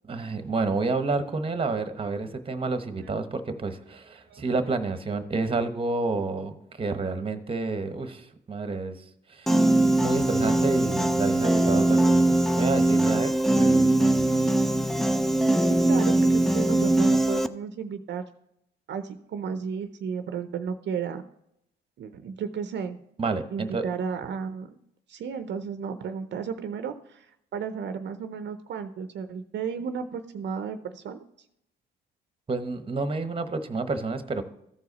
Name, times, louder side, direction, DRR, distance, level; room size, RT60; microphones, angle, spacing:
voice 1, 0.1-14.5 23.2-23.8 32.5-34.4, right 3 dB, 25° right, 9 dB, 1.0 m, -30 dB
Piano, 9.5-17.5, right 1 dB, ahead, 0.4 m, -21 dB
voice 2, 15.6-18.2 18.9-21.2 22.0-23.0 23.5-24.8 25.1-31.2, right 6 dB, 65° right, 9 dB, 0.6 m, -33 dB
14.0 x 4.8 x 4.1 m, 0.77 s
cardioid pair, 90°, 20 cm